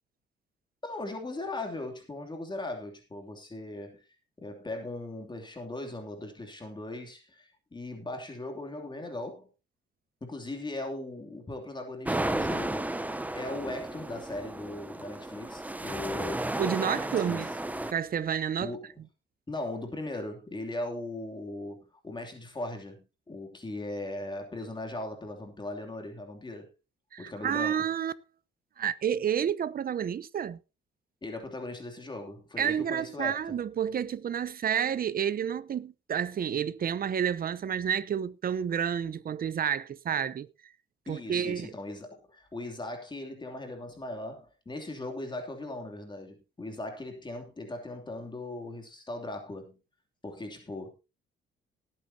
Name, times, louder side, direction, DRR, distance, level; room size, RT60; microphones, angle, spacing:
voice 1, 0.8-4.0 4.4-9.5 10.2-16.6 17.2-17.4 18.6-18.9 19.5-26.7 27.2-27.8 31.2-33.5 41.1-49.8 50.2-50.9, left 2 dB, 20° left, 2.9 m, -39 dB
sound 1, 12.1-17.9, right 1 dB, 10° right, 0.8 m, -33 dB
voice 2, 16.6-17.5 17.9-18.8 27.1-28.1 28.8-30.6 32.6-40.7 41.1-41.7, right 8 dB, 45° right, 0.8 m, -30 dB
19.0 x 8.8 x 2.8 m
cardioid pair, 90°, 20 cm